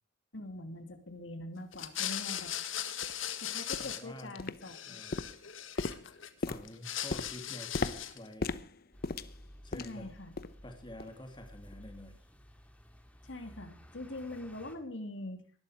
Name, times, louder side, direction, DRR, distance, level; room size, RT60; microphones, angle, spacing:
voice 1, 0.3-2.5 3.4-5.0 9.7-10.3 13.2-15.4, left 1 dB, 75° left, 6 dB, 2.7 m, -43 dB
sound 1, 1.7-4.4 4.6-6.3 6.6-8.3, left 10 dB, 90° left, 1.8 m, -38 dB
sound 2, 1.7-1.8 2.4-2.5 3.0-3.2 3.7-4.0 4.4-4.8 5.1-10.1 10.4-10.6 11.0-11.2 11.7-11.8, left 3 dB, 50° left, 0.8 m, -38 dB
voice 2, 3.8-4.4 4.9-5.3 6.4-8.5 9.6-10.1 10.6-12.2, left 1 dB, 25° left, 4 dB, 2.8 m, -48 dB
sound 3, 8.9-14.8, equal, 5° left, 2.2 m, -55 dB
19.0 x 13.0 x 5.0 m, 0.37 s
head